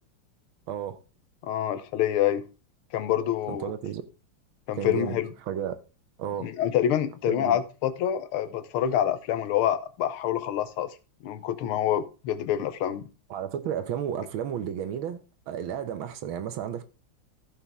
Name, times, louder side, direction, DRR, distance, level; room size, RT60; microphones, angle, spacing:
voice 1, 0.7-1.0 3.5-4.0 4.8-5.2 5.5-5.8 6.2-6.5 7.3-7.6 13.3-16.8, right 9 dB, 75° right, 1.7 m, -32 dB
voice 2, 1.4-2.4 2.9-3.7 4.7-5.3 6.4-10.9 11.2-13.1, left 11 dB, 85° left, 1.7 m, -26 dB
14.5 x 5.4 x 3.5 m
omnidirectional pair, 2.3 m